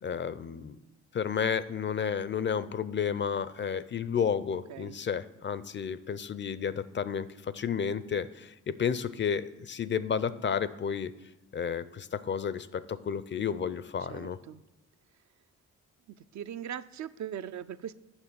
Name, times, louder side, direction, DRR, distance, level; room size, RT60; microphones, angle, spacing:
voice 1, 0.0-0.8 1.1-11.1 11.5-14.4, left 7 dB, 35° left, 15 dB, 0.4 m, -32 dB
voice 2, 14.1-14.6 16.1-17.9, right 9 dB, 60° right, 11 dB, 0.5 m, -40 dB
7.1 x 5.6 x 6.7 m, 1.0 s
cardioid pair, 75°, 32 cm